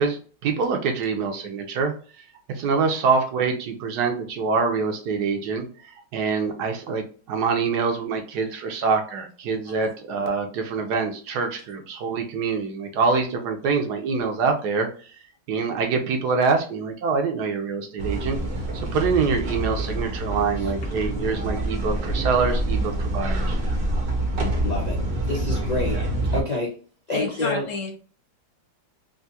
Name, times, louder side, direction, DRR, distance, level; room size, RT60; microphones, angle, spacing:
voice 1, 0.0-15.1 15.5-18.4 18.9-23.6, right 4 dB, 75° right, 4 dB, 1.2 m, -25 dB
sound 1, 18.0-26.4, right 1 dB, 45° right, 0.7 m, -26 dB
voice 2, 24.6-25.0 25.2-26.0 26.2-26.7 27.1-27.7, left 2 dB, 75° left, -3 dB, 0.3 m, -27 dB
voice 3, 27.1-27.9, left 3 dB, 55° left, 2 dB, 1.0 m, -30 dB
3.5 x 2.5 x 2.7 m, 0.40 s
omnidirectional pair, 1.9 m